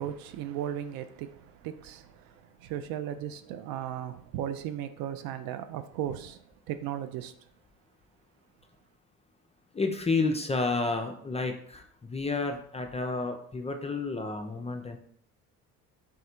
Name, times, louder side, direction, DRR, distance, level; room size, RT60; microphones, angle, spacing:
voice 1, 0.0-7.3, right 10 dB, 55° right, 0.5 m, -36 dB
voice 2, 9.7-15.0, left 3 dB, 15° left, 0.4 m, -30 dB
3.6 x 3.2 x 4.2 m
figure-of-eight pair, 50°, 45 cm